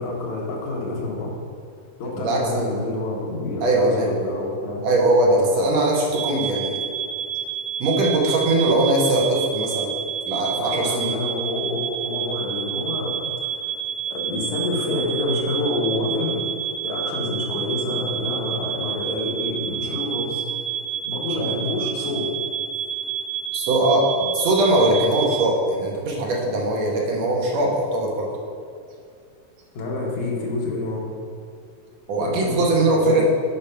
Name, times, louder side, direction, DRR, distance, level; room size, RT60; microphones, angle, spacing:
voice 1, 0.0-1.3 2.0-4.8 10.5-13.2 13.5-13.7 14.1-20.4 21.0-22.3 29.7-31.1 32.2-33.2, left 2 dB, 75° left, -3 dB, 2.7 m, -28 dB
voice 2, 2.1-2.6 3.6-4.1 4.8-6.8 7.8-9.9 10.3-11.1 21.3-21.5 23.5-24.1 24.3-28.3 32.1-33.2, right 2 dB, 65° right, -2 dB, 2.2 m, -20 dB
sound 1, 6.1-25.5, right 8 dB, 85° right, 2.2 m, -29 dB
6.9 x 4.8 x 5.6 m, 2.3 s
omnidirectional pair, 3.4 m